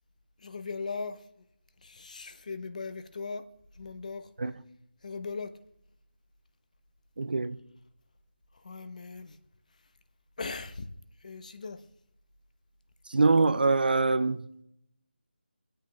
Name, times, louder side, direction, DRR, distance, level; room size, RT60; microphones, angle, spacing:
voice 1, 0.4-1.2 1.8-3.4 3.8-4.3 5.0-5.5 8.6-9.4 10.4-10.9 11.2-11.8, left 4 dB, 40° left, 0.9 m, -38 dB
voice 2, 7.2-7.6 13.1-14.5, right 3 dB, 55° right, 0.6 m, -24 dB
21.0 x 8.8 x 3.3 m
figure-of-eight pair, 170°, 6 cm